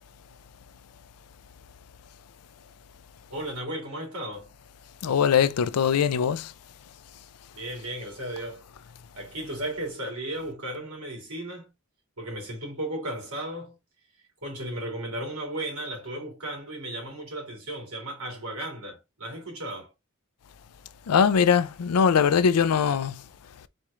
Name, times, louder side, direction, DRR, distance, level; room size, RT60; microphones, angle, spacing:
voice 1, 3.3-4.5 7.5-8.6 9.2-11.7 12.2-13.8 14.4-19.9, right 1 dB, 75° right, 2.8 m, -35 dB
voice 2, 5.0-6.5 21.1-23.3, left 7 dB, 85° left, 0.4 m, -21 dB
4.3 x 3.1 x 3.6 m
head